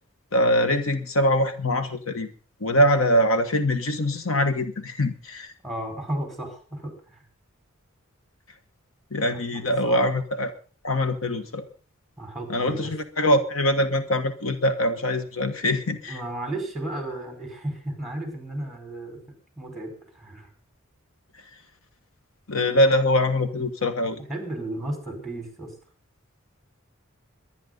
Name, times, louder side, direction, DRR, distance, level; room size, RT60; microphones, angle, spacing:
voice 1, 0.3-2.3 2.6-5.5 9.1-10.5 10.8-11.6 12.5-16.2 22.5-24.2, left 1 dB, 85° left, 8 dB, 1.5 m, -23 dB
voice 2, 5.6-7.2 9.3-10.1 12.2-12.9 16.1-19.2 19.6-20.5 24.3-25.7, right 1 dB, ahead, 3 dB, 5.0 m, -34 dB
23.0 x 10.5 x 4.0 m, 0.39 s
head